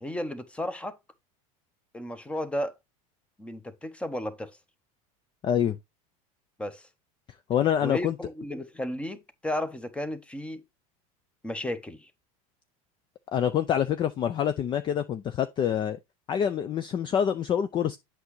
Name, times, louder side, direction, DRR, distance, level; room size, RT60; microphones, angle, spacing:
voice 1, 0.0-1.0 1.9-2.7 3.4-4.6 6.6-6.9 7.8-10.6 11.4-12.1, left 1 dB, 5° left, 0.9 m, -33 dB
voice 2, 5.4-5.8 7.5-8.2 13.3-16.0 16.3-18.0, left 9 dB, 25° left, 0.4 m, -26 dB
8.1 x 5.8 x 3.1 m
supercardioid pair, 125°, 18 cm